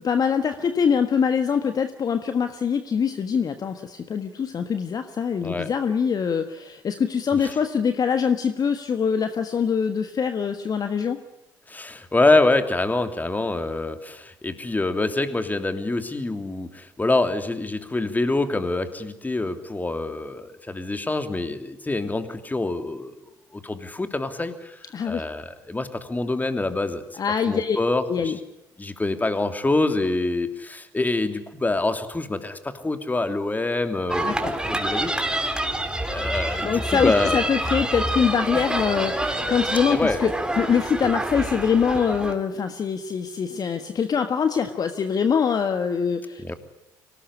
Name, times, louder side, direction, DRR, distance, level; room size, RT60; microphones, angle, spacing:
voice 1, 0.0-11.2 24.9-25.2 27.2-27.8 28.1-28.4 34.2-34.5 36.6-46.5, left 6 dB, 45° left, 8 dB, 1.5 m, -24 dB
voice 2, 11.7-23.1 23.5-27.2 27.5-28.3 28.8-35.1 36.1-37.5 39.9-40.2 46.4-46.5, left 2 dB, 20° left, 8 dB, 3.0 m, -25 dB
sound 1, 34.1-42.3, right 1 dB, 10° right, 3.7 m, -27 dB
24.5 x 18.5 x 9.9 m, 0.89 s
hypercardioid pair, 50°, 9 cm